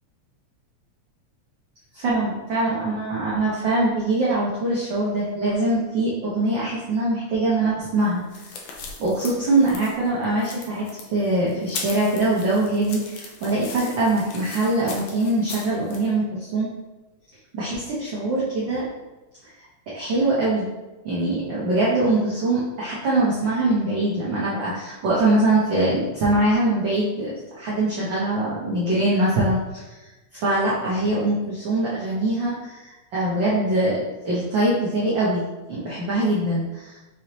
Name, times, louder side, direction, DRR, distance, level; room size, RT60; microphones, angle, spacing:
voice 1, 1.9-8.2 9.0-10.9 11.1-16.7 17.5-18.8 19.9-20.7 21.0-29.6 30.3-32.8 33.1-35.4 35.7-36.9, right 2 dB, 75° right, -7 dB, 1.0 m, -23 dB
sound 1, 8.0-16.1, left 4 dB, 75° left, 1.7 m, -38 dB
5.4 x 3.2 x 2.9 m, 1.1 s
omnidirectional pair, 3.3 m